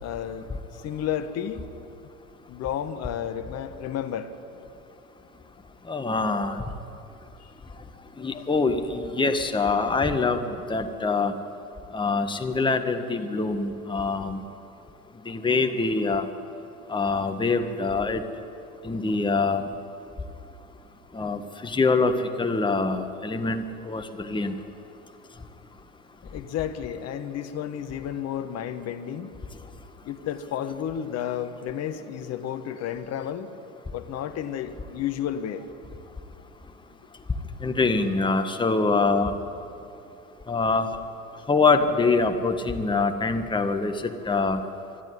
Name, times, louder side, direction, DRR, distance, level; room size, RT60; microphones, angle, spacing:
voice 1, 0.0-1.6 2.5-4.3 26.2-29.3 30.0-33.5 33.9-35.6, left 9 dB, 35° left, 9 dB, 1.4 m, -32 dB
voice 2, 5.9-6.6 8.2-10.4 10.7-11.3 11.9-14.4 15.3-16.3 16.9-18.2 18.8-19.7 21.1-24.5 37.6-39.3 40.5-40.9 41.5-44.6, left 3 dB, 10° left, 6 dB, 1.6 m, -24 dB
25.5 x 12.0 x 9.9 m, 2.7 s
figure-of-eight pair, 80°, 43 cm